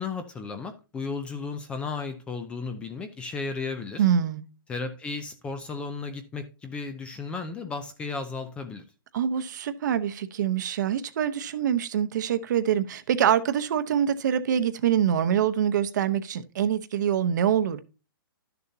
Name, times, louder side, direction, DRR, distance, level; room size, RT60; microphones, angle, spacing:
voice 1, 0.0-4.0 4.7-8.8, left 4 dB, 10° left, 0.5 m, -34 dB
voice 2, 4.0-4.4 9.1-17.9, right 9 dB, 50° right, 0.9 m, -25 dB
12.0 x 6.8 x 2.7 m
hypercardioid pair, 165°, 12 cm